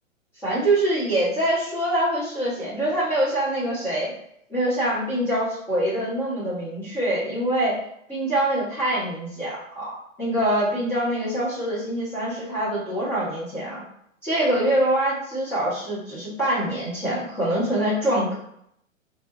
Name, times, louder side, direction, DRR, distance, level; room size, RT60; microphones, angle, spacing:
voice 1, 0.4-4.1 4.5-7.8 8.1-9.9 10.2-13.8 14.2-18.3, right 1 dB, 5° left, -11 dB, 0.4 m, -24 dB
3.8 x 2.1 x 2.5 m, 0.73 s
figure-of-eight pair, 115°, 41 cm